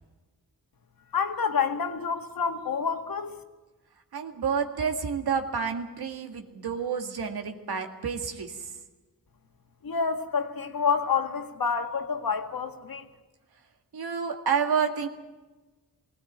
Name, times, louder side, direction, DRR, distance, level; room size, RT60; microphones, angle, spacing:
voice 1, 1.1-3.4 9.8-13.1, left 6 dB, 65° left, 6 dB, 1.9 m, -28 dB
voice 2, 4.1-8.7 13.9-15.1, right 6 dB, 80° right, 5 dB, 2.0 m, -29 dB
19.5 x 17.0 x 9.3 m, 1.2 s
cardioid pair, 65°, 38 cm